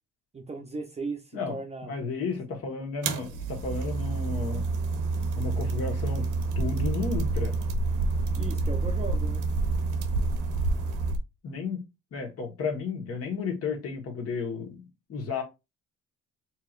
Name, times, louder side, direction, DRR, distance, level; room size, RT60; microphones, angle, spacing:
voice 1, 0.3-1.9 8.4-9.4, right 3 dB, 20° right, 0.6 m, -37 dB
voice 2, 1.8-4.7 5.4-6.3 6.5-7.5 11.4-11.8 12.1-14.8 15.1-15.4, left 4 dB, 50° left, 1.4 m, -32 dB
sound 1, 3.0-11.2, right 3 dB, 85° right, 0.8 m, -28 dB
4.6 x 3.0 x 2.5 m
cardioid pair, 120°, 30 cm